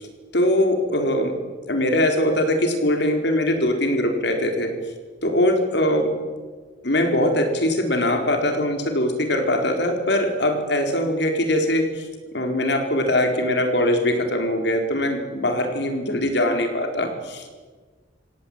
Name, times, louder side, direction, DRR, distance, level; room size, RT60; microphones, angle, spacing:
voice 1, 0.3-1.3 1.7-4.7 5.2-6.1 6.8-12.1 12.3-17.5, left 1 dB, 60° left, 5 dB, 4.3 m, -22 dB
26.0 x 17.5 x 8.7 m, 1.4 s
head